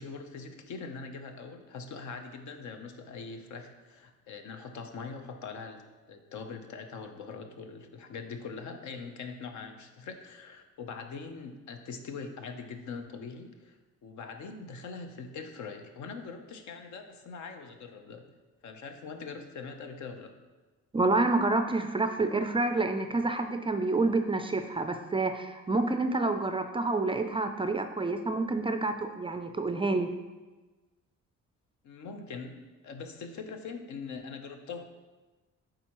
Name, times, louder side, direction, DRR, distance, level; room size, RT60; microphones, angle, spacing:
voice 1, 0.0-18.3 18.6-20.3 31.8-32.6 32.8-34.8, left 5 dB, 70° left, 6 dB, 0.7 m, -42 dB
voice 2, 20.9-30.1, right 3 dB, 20° right, 7 dB, 0.3 m, -28 dB
8.9 x 3.7 x 3.0 m, 1.2 s
cardioid pair, 90°, 30 cm